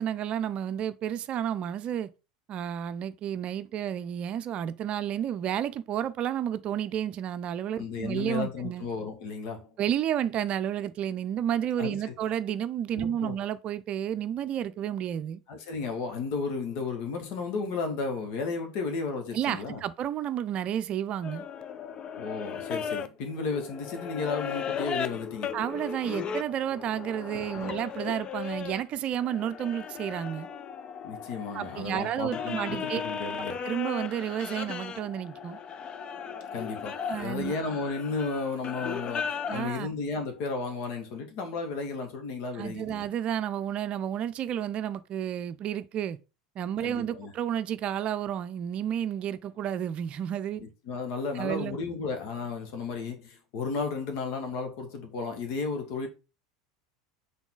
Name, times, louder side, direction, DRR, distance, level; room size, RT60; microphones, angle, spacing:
voice 1, 0.0-2.1 2.5-8.9 9.8-15.4 19.3-21.4 25.5-30.5 31.5-33.0 33.3-35.6 37.1-37.5 39.5-39.9 42.5-46.2 46.6-50.6 51.3-51.8, right 10 dB, 45° right, 0.5 m, -31 dB
voice 2, 7.8-9.7 11.8-12.1 13.0-13.3 15.5-19.8 22.2-25.6 27.5-27.7 31.0-33.7 36.5-43.1 46.8-47.3 50.6-56.1, left 4 dB, 60° left, 1.9 m, -34 dB
sound 1, 21.2-28.8 29.2-39.7, left 7 dB, 35° left, 0.6 m, -36 dB
6.0 x 4.0 x 3.8 m
hypercardioid pair, 85°, 3 cm